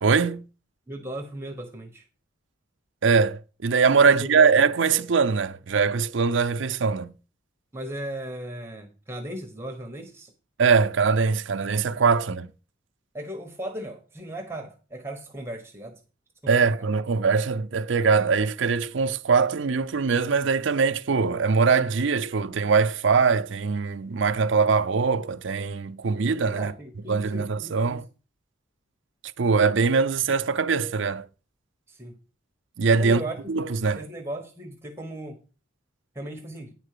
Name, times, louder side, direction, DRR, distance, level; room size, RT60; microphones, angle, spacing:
voice 1, 0.0-0.4 3.0-7.1 10.6-12.5 16.5-26.7 27.1-28.0 29.4-31.2 32.8-34.0, right 5 dB, 70° right, 0.5 m, -22 dB
voice 2, 0.9-2.0 4.0-4.6 7.7-10.3 11.9-12.0 13.1-15.9 16.4-16.9 26.3-28.0 31.9-32.2 33.0-33.6 33.9-35.4 36.1-36.7, right 1 dB, 10° right, 1.2 m, -37 dB
9.7 x 4.5 x 6.7 m
head